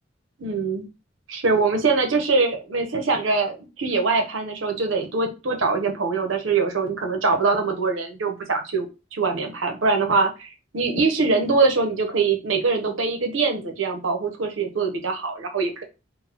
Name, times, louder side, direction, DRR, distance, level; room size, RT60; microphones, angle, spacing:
voice 1, 0.4-0.9 1.3-8.9 9.1-15.8, right 4 dB, 85° right, 4 dB, 0.8 m, -23 dB
4.0 x 2.3 x 2.8 m, 0.28 s
head